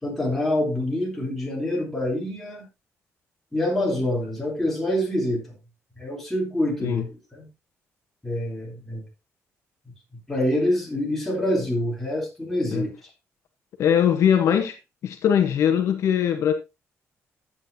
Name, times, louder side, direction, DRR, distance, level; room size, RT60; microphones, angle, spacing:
voice 1, 0.0-2.7 3.5-5.4 6.0-7.5 8.2-9.0 10.3-12.9, left 1 dB, 5° left, 3.7 m, -26 dB
voice 2, 13.8-14.8 15.0-16.5, left 9 dB, 65° left, 1.2 m, -21 dB
11.0 x 8.6 x 2.9 m
cardioid pair, 160°, 5 cm